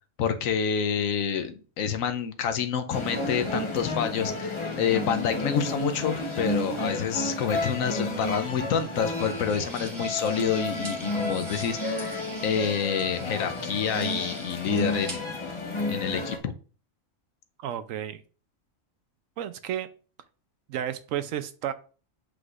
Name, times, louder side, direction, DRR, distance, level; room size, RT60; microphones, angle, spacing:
voice 1, 0.2-15.2 15.9-16.5, left 7 dB, 80° left, 8 dB, 1.1 m, -28 dB
sound 1, 2.9-16.4, left 2 dB, 25° left, 0.9 m, -32 dB
sound 2, 9.2-15.2, right 2 dB, 50° right, 2.1 m, -43 dB
voice 2, 17.6-18.2 19.4-19.9 20.7-21.7, right 10 dB, 80° right, 12 dB, 1.0 m, -32 dB
7.9 x 5.0 x 2.4 m, 0.38 s
omnidirectional pair, 1.4 m